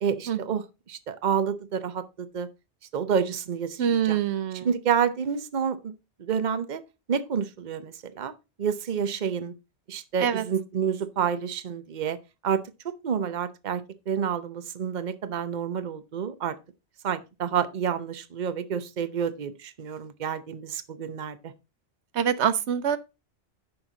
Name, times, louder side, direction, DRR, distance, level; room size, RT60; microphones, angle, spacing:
voice 1, 0.0-2.5 2.9-4.2 4.6-6.8 7.1-8.3 8.6-9.5 9.9-12.2 12.4-16.6 17.0-21.5, right 7 dB, 45° right, 0.9 m, -29 dB
voice 2, 3.8-4.7 10.2-10.4 22.2-23.0, right 8 dB, 85° right, 1.0 m, -24 dB
9.9 x 6.1 x 3.9 m
omnidirectional pair, 1.1 m